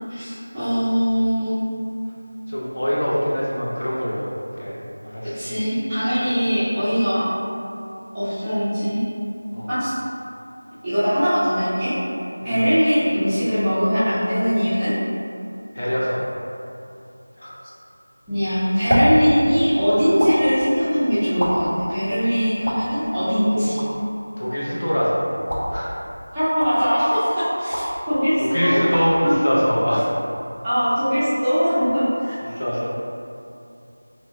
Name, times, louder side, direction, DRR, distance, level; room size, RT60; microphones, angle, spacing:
voice 1, 0.1-1.6 5.3-7.2 8.1-9.0 9.7-9.9 10.8-11.9 12.4-14.9 18.3-23.8 26.3-28.8 29.2-29.3 30.6-32.4, equal, 5° right, -20 dB, 0.5 m, -21 dB
voice 2, 2.5-4.3 4.6-4.8 5.0-5.5 9.5-9.7 12.4-12.7 15.7-16.2 17.4-17.6 23.6-23.7 24.4-25.3 25.7-26.0 28.4-30.1 32.4-32.9, equal, 40° left, -7 dB, 0.7 m, -24 dB
sound 1, 18.2-30.4, equal, 80° left, 0.9 m, -29 dB
3.7 x 2.9 x 2.5 m, 2.6 s
figure-of-eight pair, 175°, 0 cm